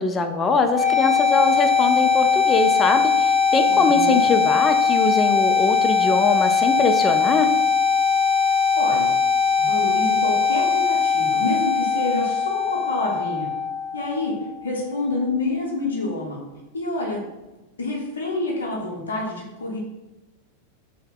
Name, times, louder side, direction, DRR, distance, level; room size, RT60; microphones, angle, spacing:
voice 1, 0.0-7.5, left 3 dB, 20° left, 6 dB, 0.3 m, -22 dB
sound 1, 0.6-14.5, left 6 dB, 5° left, 1.5 m, -20 dB
voice 2, 3.7-4.2 8.8-9.1 9.6-13.5 13.9-14.3 14.6-16.4 16.7-17.2 17.8-19.8, left 2 dB, 70° left, -2 dB, 0.6 m, -27 dB
2.6 x 2.1 x 3.7 m, 1.1 s
figure-of-eight pair, 90°, 0 cm